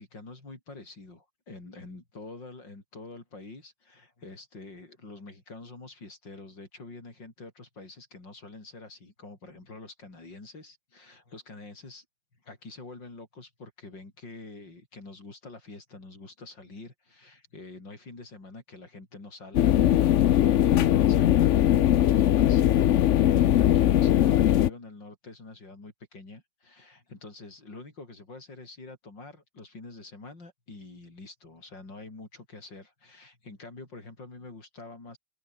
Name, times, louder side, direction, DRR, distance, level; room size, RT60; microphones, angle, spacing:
voice 1, 0.0-12.0 12.4-35.2, left 3 dB, 85° left, 6.6 m, -46 dB
sound 1, 19.5-24.7, left 11 dB, 65° left, 0.7 m, -20 dB
open air
omnidirectional pair, 1.9 m